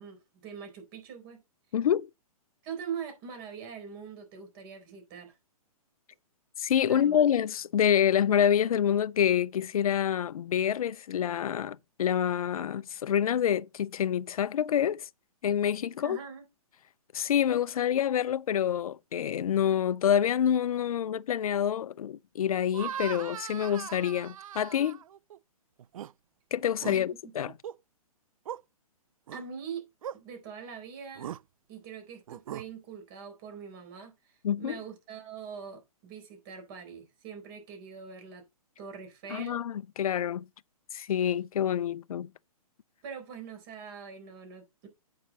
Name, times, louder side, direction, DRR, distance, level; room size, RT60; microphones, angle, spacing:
voice 1, 0.0-1.4 2.6-5.3 6.9-7.2 16.0-16.4 26.9-27.1 29.3-29.9 30.1-31.3 31.7-38.4 38.8-39.6 43.0-44.9, right 6 dB, 35° right, 4.1 m, -43 dB
voice 2, 1.7-2.1 6.6-15.1 15.4-16.2 17.1-25.0 26.5-27.5 34.4-34.8 39.3-40.5 40.9-42.3, left 9 dB, 70° left, 0.5 m, -27 dB
sound 1, 22.7-25.4 25.8-26.1 26.6-27.0 27.5-27.8 28.5-28.6 29.3-29.4 30.0-30.2 31.2-31.4 32.3-32.7, right 10 dB, 65° right, 0.4 m, -39 dB
8.4 x 6.3 x 4.1 m
hypercardioid pair, 145°, 19 cm